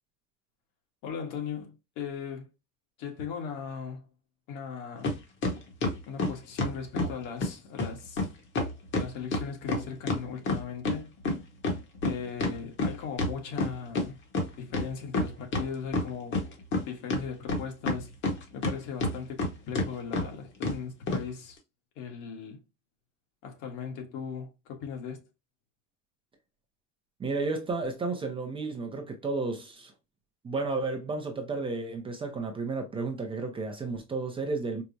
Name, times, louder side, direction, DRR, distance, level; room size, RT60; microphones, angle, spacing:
voice 1, 1.0-2.5 3.0-4.0 4.5-5.1 6.1-8.2 8.9-11.1 12.0-14.2 14.6-16.4 16.8-18.1 18.5-21.6 22.0-22.6 23.4-25.2, left 6 dB, 75° left, 1.3 m, -38 dB
sound 1, 5.0-5.2 5.4-7.1 7.4-7.5 7.8-7.9 8.2-8.3 8.6-11.0 11.3-14.1 14.3-14.4 14.7-15.7 15.9-16.8 17.1-18.7 19.0-19.5 19.8-19.9 20.1-20.3 20.6-20.8 21.1-21.2, left 2 dB, 35° left, 1.0 m, -28 dB
voice 2, 27.2-29.9 30.4-34.8, right 3 dB, 15° right, 0.4 m, -32 dB
4.5 x 2.0 x 2.6 m
cardioid pair, 170°, 32 cm